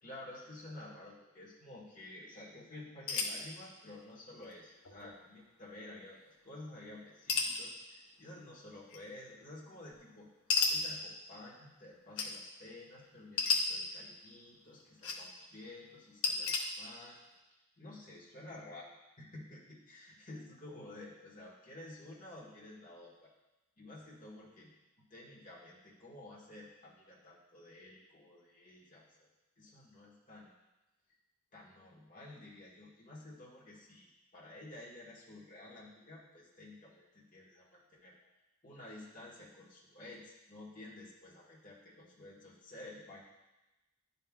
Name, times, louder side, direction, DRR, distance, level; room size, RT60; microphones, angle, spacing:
voice 1, 0.0-6.2 6.4-10.3 10.7-17.2 17.8-18.9 19.2-23.3 23.8-24.7 25.1-29.3 29.6-30.5 31.5-38.2 38.6-43.2, left 2 dB, 35° left, -4 dB, 1.6 m, -51 dB
sound 1, 3.1-3.4 4.4-4.5 4.8-5.2 7.3-7.6 8.9-9.0 10.5-10.7 12.2-12.3 13.4-13.6 14.7-15.2 16.2-16.6, left 5 dB, 65° left, 0.8 m, -31 dB
10.5 x 5.5 x 2.4 m, 1.0 s
head